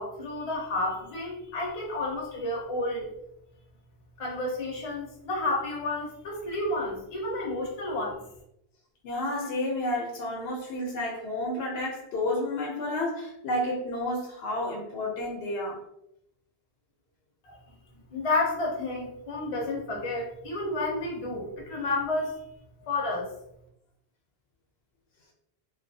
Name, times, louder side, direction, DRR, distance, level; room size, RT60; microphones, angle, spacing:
voice 1, 0.0-3.1 4.2-8.2 17.4-17.6 18.1-22.3 22.9-23.3, left 2 dB, 40° left, -2 dB, 0.6 m, -31 dB
voice 2, 9.0-15.8, left 1 dB, 80° left, 0 dB, 0.9 m, -31 dB
2.6 x 2.3 x 2.6 m, 0.79 s
omnidirectional pair, 1.0 m